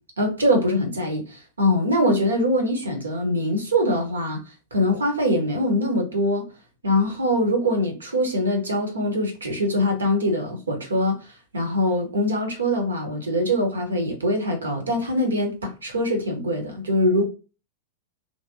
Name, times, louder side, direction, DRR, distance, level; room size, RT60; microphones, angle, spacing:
voice 1, 0.2-4.4 4.7-6.5 6.8-11.2 11.5-17.3, left 1 dB, 75° right, 1.2 m, -23 dB
3.2 x 3.0 x 2.7 m
figure-of-eight pair, 90°, 0 cm